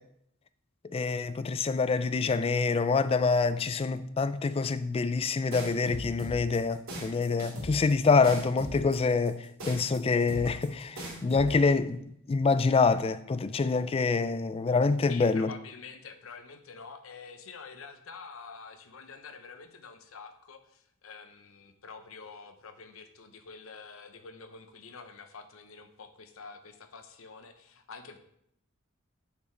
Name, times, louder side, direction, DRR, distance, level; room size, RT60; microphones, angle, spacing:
voice 1, 0.9-15.5, left 4 dB, 30° left, 0.3 m, -26 dB
sound 1, 5.5-11.5, equal, 90° right, 2.7 m, -39 dB
voice 2, 15.1-28.2, left 5 dB, 80° left, 0.8 m, -47 dB
6.9 x 4.7 x 4.4 m
head